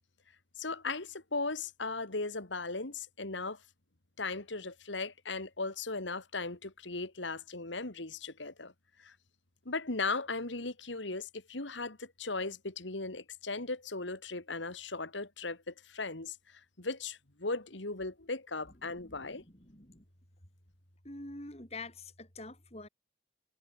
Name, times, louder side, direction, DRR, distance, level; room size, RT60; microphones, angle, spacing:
voice 1, 0.6-3.6 4.2-8.7 9.0-9.1 9.7-16.4 16.8-19.4, left 3 dB, 75° left, 2.6 m, -37 dB
voice 2, 19.0-20.0 21.0-22.9, left 2 dB, 35° left, 5.4 m, -46 dB
head